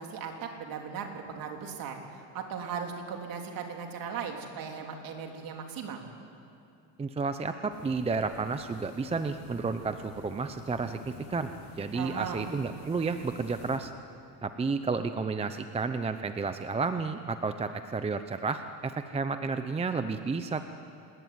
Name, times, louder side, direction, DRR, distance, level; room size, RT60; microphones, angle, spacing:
voice 1, 0.0-6.0 11.9-12.5, right 6 dB, 50° right, 3 dB, 3.6 m, -38 dB
voice 2, 7.0-13.9 14.4-20.6, right 4 dB, 15° right, 9 dB, 0.7 m, -31 dB
sound 1, 7.7-13.8, left 5 dB, 85° left, 3.6 m, -50 dB
26.0 x 20.5 x 9.5 m, 2.6 s
cardioid pair, 140°, 46 cm